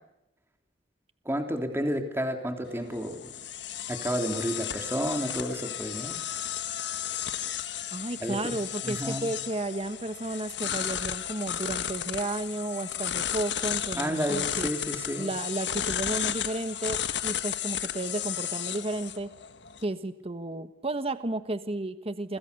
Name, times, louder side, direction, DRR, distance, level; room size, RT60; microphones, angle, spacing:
voice 1, 1.2-3.3 3.9-6.2 8.2-8.5 8.8-9.3 13.9-15.3, equal, 15° right, 4 dB, 3.3 m, -31 dB
sound 1, 2.6-19.8, left 10 dB, 70° left, 1.7 m, -34 dB
voice 2, 7.9-14.7 15.2-19.3 19.8-22.4, right 2 dB, 35° right, 10 dB, 1.4 m, -33 dB
29.5 x 25.5 x 6.9 m, 0.89 s
head